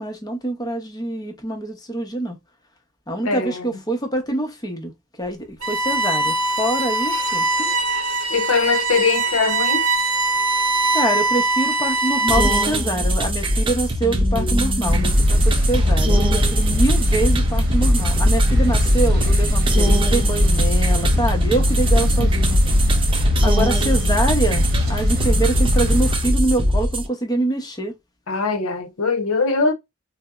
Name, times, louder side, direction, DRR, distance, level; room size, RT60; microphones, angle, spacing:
voice 1, 0.0-2.4 3.1-4.9 5.2-7.7 10.9-22.6 23.4-27.9, right 1 dB, 20° left, 0.7 m, -25 dB
voice 2, 3.2-3.8 8.3-9.8 14.0-15.1 22.0-22.3 28.3-29.7, left 4 dB, 80° left, 0.7 m, -22 dB
Bowed string instrument, 5.6-12.9, right 2 dB, 70° right, 0.7 m, -22 dB
sound 1, 12.3-27.1, equal, 25° right, 0.5 m, -21 dB
sound 2, 14.8-26.1, left 1 dB, 50° right, 0.9 m, -20 dB
4.0 x 2.0 x 2.3 m
head